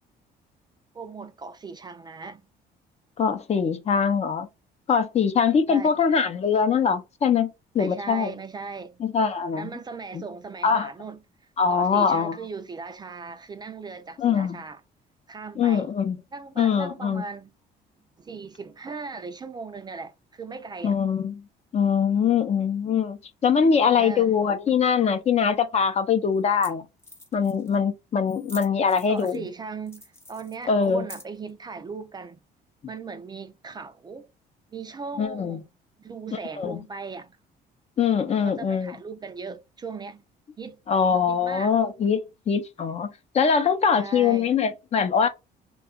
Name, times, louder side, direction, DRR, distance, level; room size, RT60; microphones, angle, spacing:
voice 1, 0.9-2.4 5.7-6.0 7.8-9.0 9.5-11.2 11.7-14.8 15.3-15.9 16.3-17.5 18.2-21.0 23.7-24.3 29.1-32.4 32.9-34.3 34.7-35.6 36.0-37.4 38.2-40.2 40.6-40.8 41.3-41.8 43.9-44.5, right 4 dB, 25° right, 0.4 m, -38 dB
voice 2, 3.2-4.5 4.9-7.5 7.7-8.3 9.0-9.7 10.6-10.9 11.6-12.4 14.2-14.6 15.6-16.2 16.6-17.2 20.8-21.4 21.7-26.8 27.3-29.5 30.7-31.1 35.2-35.6 36.3-36.8 38.0-38.9 40.9-45.3, left 6 dB, 40° left, 0.6 m, -23 dB
sound 1, 26.4-26.5 26.6-26.7 27.0-27.8 28.3-29.5 29.9-31.5, left 1 dB, 15° left, 1.0 m, -46 dB
2.7 x 2.3 x 3.7 m
cardioid pair, 110°, 17 cm